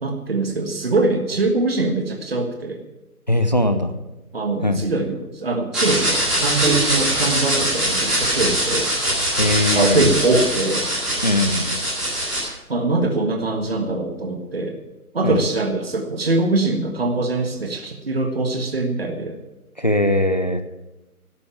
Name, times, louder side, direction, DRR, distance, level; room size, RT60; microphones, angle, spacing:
voice 1, 0.0-2.8 4.3-8.9 9.7-10.9 12.7-14.8 15.1-19.4, right 2 dB, 40° right, 4 dB, 1.6 m, -22 dB
voice 2, 3.3-3.9 4.6-4.8 9.4-10.2 11.2-11.8 15.2-15.4 19.8-20.6, left 1 dB, 30° left, 9 dB, 0.7 m, -20 dB
sound 1, 5.7-12.4, equal, ahead, 2.4 m, -22 dB
12.5 x 8.7 x 8.8 m, 0.99 s
figure-of-eight pair, 160°, 45 cm